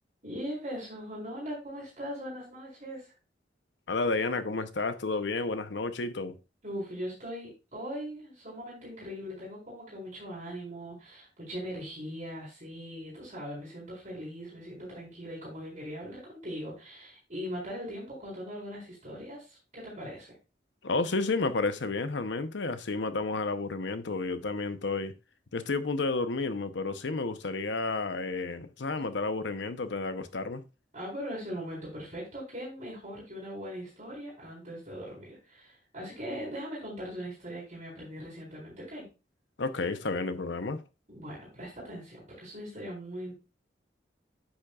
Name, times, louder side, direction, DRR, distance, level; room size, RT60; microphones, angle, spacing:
voice 1, 0.2-3.1 6.6-20.3 30.9-39.1 41.1-43.3, equal, 45° right, 4.2 m, -40 dB
voice 2, 3.9-6.4 20.8-25.1 25.5-30.6 39.6-40.8, left 3 dB, 85° left, 0.8 m, -31 dB
9.6 x 7.4 x 2.4 m
head